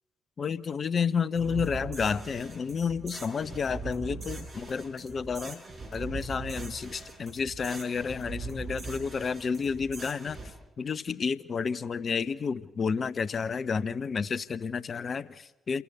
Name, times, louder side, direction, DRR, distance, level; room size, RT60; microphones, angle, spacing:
voice 1, 0.4-5.6 5.9-10.4 10.8-15.8, left 5 dB, 45° left, 17 dB, 0.8 m, -31 dB
sound 1, 1.4-10.5, right 3 dB, 45° right, 6.1 m, -41 dB
28.0 x 14.0 x 8.3 m, 0.96 s
figure-of-eight pair, 40°, 0 cm